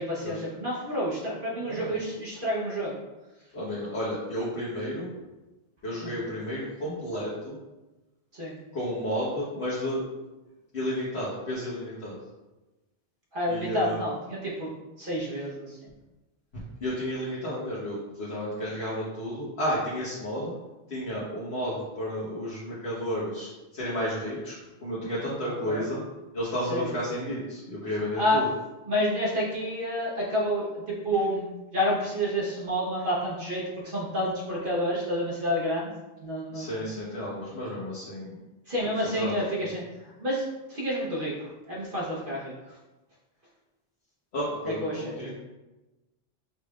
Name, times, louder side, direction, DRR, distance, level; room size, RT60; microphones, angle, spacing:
voice 1, 0.0-2.9 6.0-6.1 8.3-8.6 13.3-14.7 15.0-15.9 25.7-25.8 26.7-26.9 28.2-28.4 28.9-35.9 36.2-36.7 38.7-42.8 44.7-45.3, equal, 55° right, -6 dB, 1.2 m, -29 dB
voice 2, 1.6-1.9 3.5-5.1 5.8-7.6 8.7-10.0 10.7-12.2 13.5-14.0 16.8-20.5 20.9-24.5 24.8-26.0 26.3-28.5 36.5-38.4 39.0-39.4 44.3-45.3, equal, 75° left, -9 dB, 1.3 m, -32 dB
5.5 x 3.4 x 2.3 m, 1.1 s
omnidirectional pair, 1.1 m